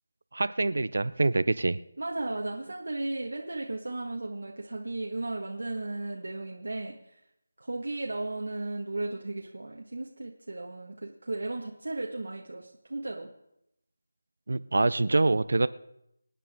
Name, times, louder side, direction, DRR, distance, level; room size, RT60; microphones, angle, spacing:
voice 1, 0.3-1.8 14.5-15.7, right 2 dB, 70° right, 15 dB, 0.6 m, -25 dB
voice 2, 2.0-6.9 7.6-13.3, right 2 dB, 85° right, -1 dB, 1.7 m, -35 dB
26.0 x 9.2 x 3.7 m, 0.80 s
figure-of-eight pair, 175°, 0 cm